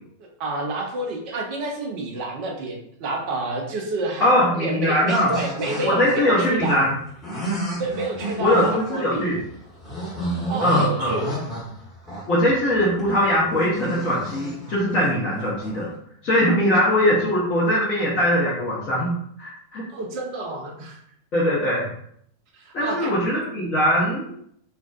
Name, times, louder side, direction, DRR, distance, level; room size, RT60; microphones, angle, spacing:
voice 1, 0.4-4.3 4.6-6.8 7.8-9.3 10.5-11.3 19.9-21.0 22.6-23.2, right 2 dB, 45° right, 1 dB, 0.6 m, -29 dB
voice 2, 4.2-5.3 5.8-7.0 8.4-9.4 10.6-11.2 12.3-15.9 16.2-19.8 21.3-21.9 22.7-24.3, equal, 35° left, -6 dB, 0.6 m, -21 dB
sound 1, 5.1-15.8, right 1 dB, 5° left, 1.0 m, -32 dB
2.5 x 2.2 x 2.3 m, 0.68 s
figure-of-eight pair, 90°, 0 cm